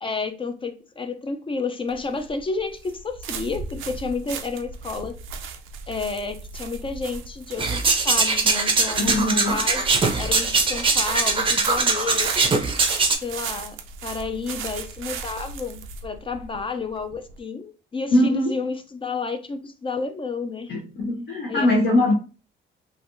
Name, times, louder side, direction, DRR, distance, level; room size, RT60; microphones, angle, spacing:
voice 1, 0.0-5.1 5.9-9.9 10.1-12.3 13.2-20.7 21.5-22.1, left 4 dB, 25° left, 0.4 m, -31 dB
sound 1, 1.9-17.4, right 5 dB, 85° right, 0.5 m, -36 dB
sound 2, 7.6-13.2, right 4 dB, 25° right, 0.6 m, -21 dB
voice 2, 9.0-9.6 18.1-18.6 20.7-22.1, left 1 dB, 55° left, 0.8 m, -21 dB
3.2 x 2.5 x 2.5 m
cardioid pair, 90°, 20 cm